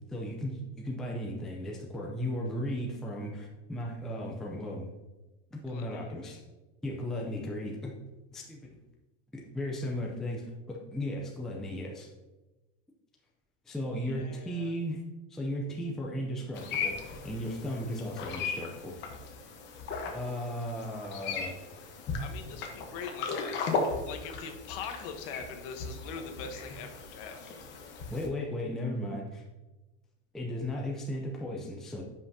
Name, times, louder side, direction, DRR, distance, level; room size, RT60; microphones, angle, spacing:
voice 1, 0.1-4.9 5.5-6.4 6.8-8.0 8.3-8.8 9.3-12.1 13.7-15.0 15.3-18.9 20.1-21.6 28.1-29.4 30.3-32.0, left 1 dB, ahead, -2 dB, 0.4 m, -36 dB
voice 2, 5.7-6.4 14.0-14.7 22.2-23.6 24.0-27.5, left 6 dB, 55° left, 6 dB, 1.1 m, -43 dB
sound 1, 16.5-28.3, left 4 dB, 35° left, 1.0 m, -37 dB
9.9 x 5.8 x 2.7 m, 1.1 s
supercardioid pair, 165°, 34 cm